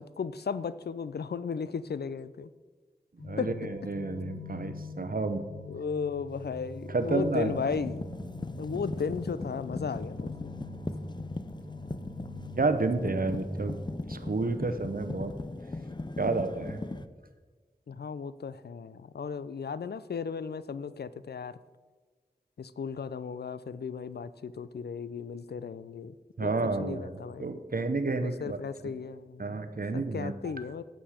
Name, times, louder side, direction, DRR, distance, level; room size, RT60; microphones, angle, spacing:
voice 1, 0.0-2.5 3.4-3.5 5.0-5.1 5.7-8.0 8.6-10.6 17.9-21.6 22.6-26.2 26.4-27.5 28.2-29.6 29.9-30.8, left 6 dB, 80° left, 15 dB, 0.4 m, -35 dB
sound 1, 3.2-13.8, left 2 dB, 50° left, 1.2 m, -43 dB
voice 2, 3.2-5.4 6.9-7.5 12.6-13.8 14.1-15.3 16.2-16.8 26.4-27.1 27.4-28.6 29.4-30.3, right 3 dB, 60° right, 9 dB, 0.8 m, -30 dB
sound 2, 6.4-6.6 7.1-17.1, left 2 dB, 25° left, 0.5 m, -39 dB
8.6 x 7.7 x 4.9 m, 1.4 s
wide cardioid pair, 40°, 17 cm